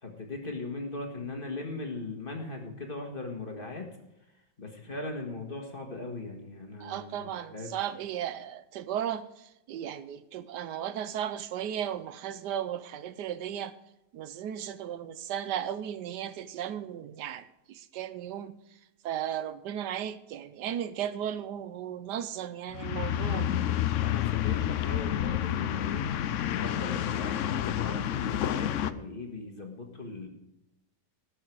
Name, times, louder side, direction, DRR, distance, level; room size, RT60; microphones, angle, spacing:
voice 1, 0.0-3.9 4.6-7.7 24.0-26.1 26.6-30.3, left 2 dB, 35° left, 1.7 m, -39 dB
voice 2, 6.8-13.7 14.1-18.5 19.0-23.5, right 10 dB, 80° right, 1.3 m, -35 dB
sound 1, 22.7-28.9, left 11 dB, 70° left, 0.7 m, -29 dB
19.0 x 6.7 x 4.7 m
omnidirectional pair, 1.8 m